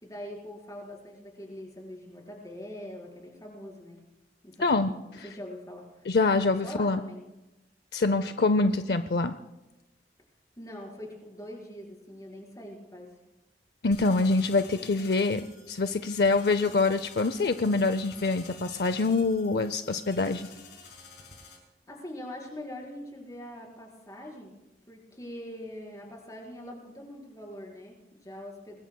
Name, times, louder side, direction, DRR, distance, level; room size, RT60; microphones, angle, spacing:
voice 1, 0.0-4.0 4.4-4.9 5.2-7.2 10.6-13.1 21.9-24.6 24.9-28.8, left 1 dB, 20° left, -1 dB, 4.6 m, -43 dB
voice 2, 4.6-4.9 6.1-7.0 7.9-9.3 13.8-20.5, left 3 dB, 65° left, 11 dB, 0.6 m, -25 dB
sound 1, 13.9-21.6, left 4 dB, 80° left, 5.7 m, -50 dB
24.5 x 20.0 x 2.3 m, 0.99 s
head